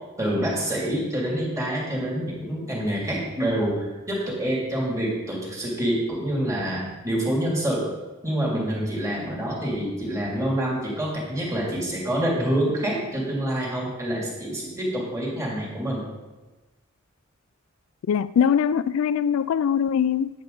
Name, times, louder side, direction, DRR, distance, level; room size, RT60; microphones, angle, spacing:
voice 1, 0.2-7.9 8.2-16.0, right 1 dB, 15° right, 2.7 m, -27 dB
voice 2, 18.1-20.3, left 8 dB, 85° left, 0.3 m, -22 dB
9.4 x 9.0 x 3.9 m
head